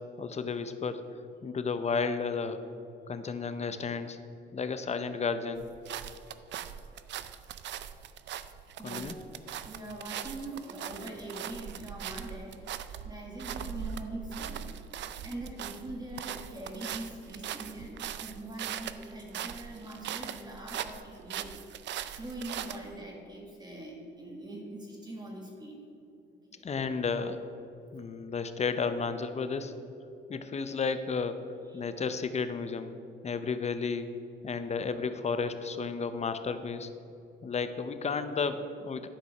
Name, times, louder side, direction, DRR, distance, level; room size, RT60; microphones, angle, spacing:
voice 1, 0.2-1.0 1.4-2.6 3.1-4.2 4.5-5.7 8.8-9.2 26.6-27.4 27.9-29.7 30.3-31.4 31.7-33.0 33.2-34.1 34.4-36.9 37.4-39.1, left 5 dB, 35° left, 10 dB, 0.7 m, -32 dB
sound 1, 5.6-23.0, right 10 dB, 65° right, 0.5 m, -40 dB
voice 2, 8.8-9.3 9.7-14.9 15.2-21.5 22.1-25.9 26.3-26.7 31.7-31.9 34.5-34.6, right 1 dB, 20° right, -1 dB, 1.8 m, -43 dB
11.5 x 5.0 x 5.8 m, 2.7 s
cardioid pair, 90°, 20 cm